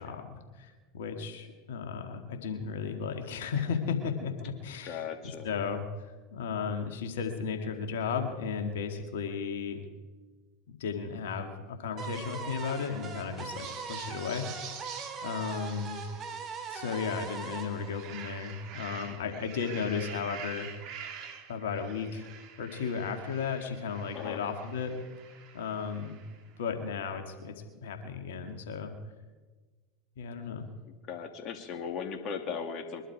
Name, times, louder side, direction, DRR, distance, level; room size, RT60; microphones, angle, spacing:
voice 1, 0.0-5.0 5.4-5.8 6.3-9.8 10.7-14.7 15.2-16.1 16.7-20.7 21.5-22.3 22.6-25.0 25.5-26.2 26.6-27.5 27.8-28.9 30.2-30.6, left 6 dB, 70° left, 5 dB, 2.1 m, -34 dB
voice 2, 4.9-5.6 24.1-24.4 31.1-33.1, left 6 dB, 45° left, 5 dB, 2.4 m, -37 dB
sound 1, 12.0-18.9, right 5 dB, 35° right, 2.5 m, -41 dB
sound 2, 13.5-17.4 17.8-26.5, right 7 dB, 50° right, 2.2 m, -47 dB
22.5 x 11.5 x 4.8 m, 1.3 s
hypercardioid pair, 85°, 0 cm